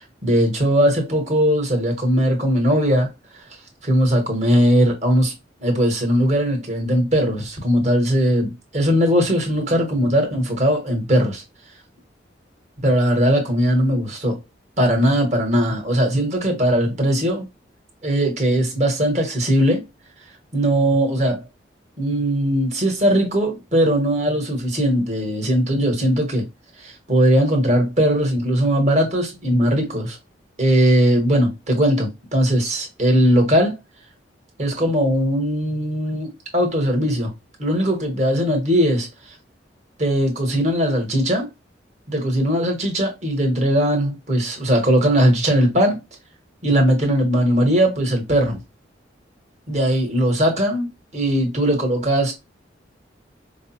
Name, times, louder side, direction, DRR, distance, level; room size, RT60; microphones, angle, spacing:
voice 1, 0.0-3.1 3.8-5.3 5.6-11.4 12.8-14.4 14.8-17.5 18.0-19.8 20.5-21.4 22.0-26.5 26.8-30.2 30.6-33.8 34.6-37.3 37.6-39.3 40.0-41.5 42.1-46.0 46.6-48.6 49.7-52.3, equal, 40° right, 1.2 m, -19 dB
4.7 x 2.0 x 2.8 m
head